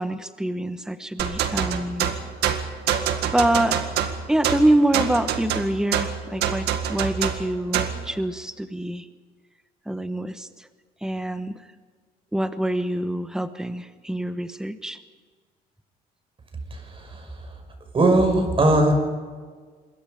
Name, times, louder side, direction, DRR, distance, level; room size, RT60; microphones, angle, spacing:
voice 1, 0.0-2.1 3.3-3.8 4.3-9.1 9.9-10.5 11.0-11.5 12.3-15.0, right 1 dB, 5° right, 10 dB, 1.2 m, -25 dB
sound 1, 1.2-8.0, right 9 dB, 80° right, 2.0 m, -26 dB
voice 2, 16.9-17.3 17.9-18.9, right 2 dB, 30° right, 4 dB, 6.0 m, -19 dB
26.5 x 22.5 x 5.2 m, 1.5 s
cardioid pair, 110°, 17 cm